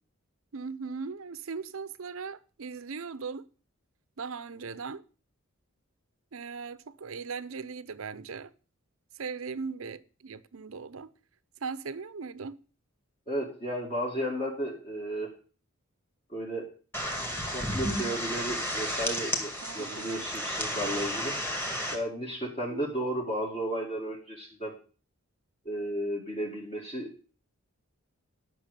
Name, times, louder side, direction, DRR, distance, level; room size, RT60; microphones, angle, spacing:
voice 1, 0.5-3.5 4.2-5.0 6.3-8.5 9.1-11.1 11.6-12.6 19.6-20.3 22.7-22.9, right 5 dB, 70° right, 0.7 m, -38 dB
voice 2, 13.3-15.3 16.3-16.7 17.5-21.4 21.9-24.7 25.7-27.1, equal, 30° left, 2.2 m, -33 dB
sound 1, 16.9-22.0, equal, 10° left, 2.3 m, -32 dB
10.5 x 6.2 x 6.7 m
head